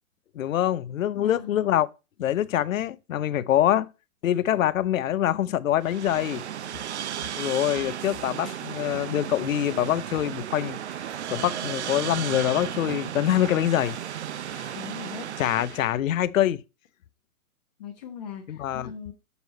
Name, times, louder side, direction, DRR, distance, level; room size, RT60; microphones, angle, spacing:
voice 1, 0.3-1.9 2.2-3.9 4.2-6.4 7.4-10.8 11.3-14.0 14.5-14.7 15.4-16.6 18.5-18.9, left 11 dB, 65° left, 0.7 m, -25 dB
voice 2, 1.1-1.6 14.7-15.6 17.8-19.1, left 7 dB, 30° left, 1.1 m, -40 dB
sound 1, 5.8-15.9, right 10 dB, 50° right, 0.7 m, -34 dB
6.9 x 6.2 x 4.0 m
hypercardioid pair, 165°, 43 cm